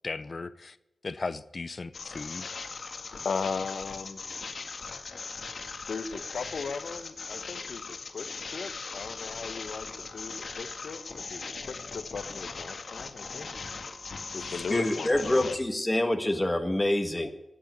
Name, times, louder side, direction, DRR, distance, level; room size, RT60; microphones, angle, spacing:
voice 1, 0.0-0.8 1.0-2.5, left 3 dB, 45° left, 16 dB, 0.7 m, -36 dB
sound 1, 1.9-15.6, left 4 dB, 70° left, 1.9 m, -39 dB
voice 2, 3.2-4.2 5.9-13.5 14.3-15.6, left 5 dB, 90° left, 12 dB, 1.0 m, -37 dB
voice 3, 14.7-17.3, left 1 dB, 15° left, 5 dB, 1.5 m, -26 dB
16.5 x 8.8 x 9.3 m, 0.95 s
wide cardioid pair, 95°, 0 cm